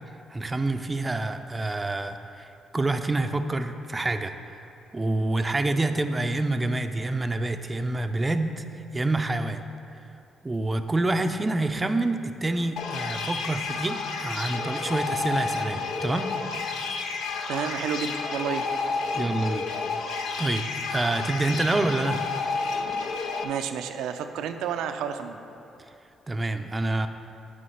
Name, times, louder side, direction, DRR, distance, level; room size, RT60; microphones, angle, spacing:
voice 1, 0.3-4.6 4.9-9.6 10.4-16.3 19.1-19.7 20.0-22.2 26.3-27.1, right 2 dB, 20° right, 8 dB, 0.4 m, -27 dB
sound 1, 12.8-23.4, left 4 dB, 80° left, 0.6 m, -31 dB
voice 2, 17.5-18.7 23.4-25.4, right 7 dB, 90° right, 8 dB, 0.4 m, -30 dB
8.3 x 5.0 x 5.6 m, 2.7 s
cardioid pair, 90°, 0 cm